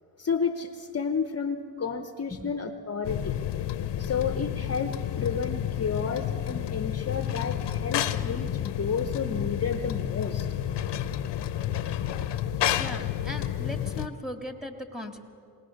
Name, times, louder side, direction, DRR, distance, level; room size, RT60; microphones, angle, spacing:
voice 1, 0.2-3.3 4.0-10.5, left 6 dB, 35° left, 9 dB, 0.9 m, -31 dB
sound 1, 3.0-14.1, left 10 dB, 70° left, 0.8 m, -30 dB
voice 2, 12.8-15.2, left 1 dB, ahead, 5 dB, 2.0 m, -38 dB
21.5 x 19.0 x 6.5 m, 2.4 s
cardioid pair, 70°, 44 cm